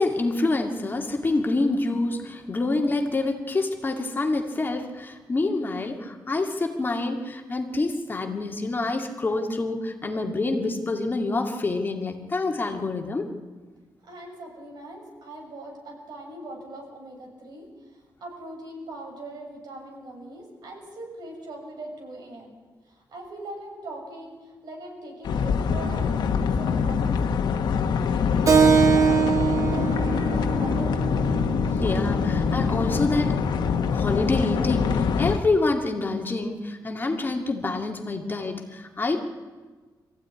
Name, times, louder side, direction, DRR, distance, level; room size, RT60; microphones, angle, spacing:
voice 1, 0.0-13.3 31.8-33.4 33.9-39.2, left 2 dB, 30° left, 2 dB, 2.3 m, -27 dB
voice 2, 14.0-22.5 22.8-27.5 28.1-31.2, right 1 dB, 75° right, 1 dB, 6.9 m, -41 dB
sound 1, 25.2-35.4, left 6 dB, 85° left, 1.4 m, -24 dB
Keyboard (musical), 28.5-33.5, right 6 dB, 50° right, 2.6 m, -24 dB
23.5 x 15.0 x 9.8 m, 1.4 s
wide cardioid pair, 125°, 7 cm